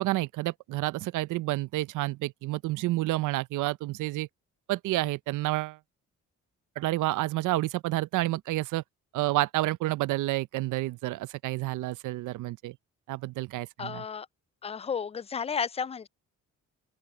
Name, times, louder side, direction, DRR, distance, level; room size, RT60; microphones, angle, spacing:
voice 1, 0.0-4.3 4.7-5.8 6.8-8.8 9.1-12.7 13.1-14.0, right 17 dB, 85° right, 0.6 m, -29 dB
voice 2, 13.8-14.3 14.6-16.1, left 6 dB, 20° left, 0.4 m, -32 dB
open air
cardioid pair, 90°, 30 cm